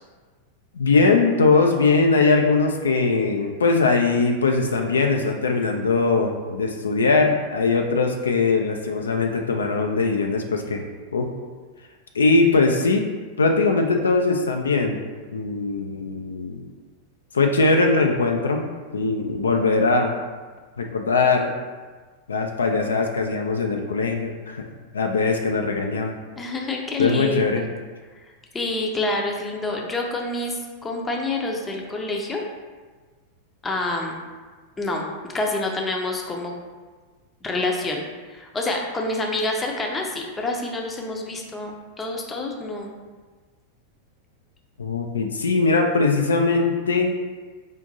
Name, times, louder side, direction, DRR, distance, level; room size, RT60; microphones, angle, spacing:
voice 1, 0.8-10.8 11.1-11.3 12.1-13.1 13.4-15.0 15.3-16.7 17.3-18.7 18.9-20.1 20.8-21.5 22.3-24.6 24.9-26.2 27.0-27.6 44.8-47.1, left 3 dB, 70° left, 3 dB, 0.3 m, -21 dB
voice 2, 26.4-27.7 28.1-28.2 28.5-32.4 33.6-34.2 34.8-36.5 37.4-42.9, left 2 dB, 15° left, 0 dB, 0.5 m, -27 dB
5.0 x 2.5 x 2.7 m, 1.4 s
figure-of-eight pair, 90°, 0 cm